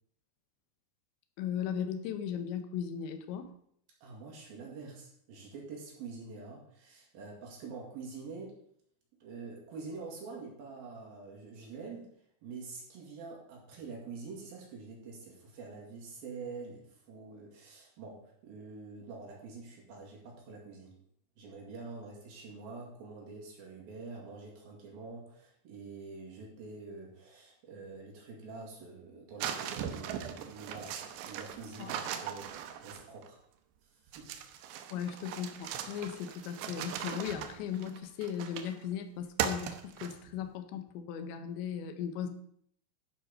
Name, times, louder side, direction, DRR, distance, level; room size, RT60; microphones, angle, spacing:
voice 1, 1.4-3.5 31.8-31.9 34.9-42.3, left 8 dB, 75° left, 8 dB, 2.8 m, -37 dB
voice 2, 4.0-8.5 9.2-12.1 12.4-20.9 21.4-31.0 31.2-32.5 32.8-33.4 33.9-34.3, right 4 dB, 55° right, -2 dB, 3.3 m, -46 dB
sound 1, 29.4-33.3 34.1-38.8 39.4-40.4, right 9 dB, 80° right, 2.6 m, -39 dB
12.0 x 5.4 x 5.1 m, 0.67 s
omnidirectional pair, 5.8 m